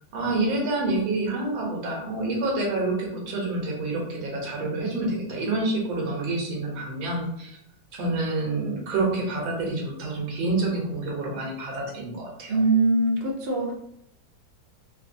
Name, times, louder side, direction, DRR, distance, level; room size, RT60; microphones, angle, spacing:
voice 1, 0.0-7.6 7.9-12.6, right 2 dB, 80° right, -1 dB, 1.7 m, -28 dB
voice 2, 12.5-13.7, right 3 dB, 50° right, -3 dB, 0.7 m, -22 dB
3.6 x 2.9 x 2.6 m, 0.75 s
omnidirectional pair, 2.1 m